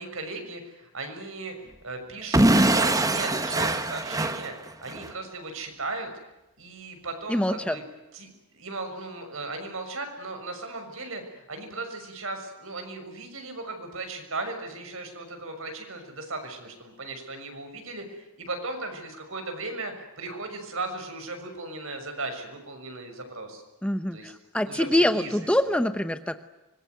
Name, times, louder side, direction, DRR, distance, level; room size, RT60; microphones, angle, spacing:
voice 1, 0.0-6.1 6.6-7.8 8.1-23.6 24.1-24.3 24.6-25.8, right 3 dB, 65° right, 6 dB, 6.4 m, -37 dB
Explosion / Shatter, 2.3-5.1, right 1 dB, 15° right, 1.3 m, -23 dB
voice 2, 7.3-7.8 23.8-26.4, left 1 dB, 5° left, 10 dB, 0.9 m, -25 dB
25.0 x 22.5 x 9.4 m, 0.98 s
head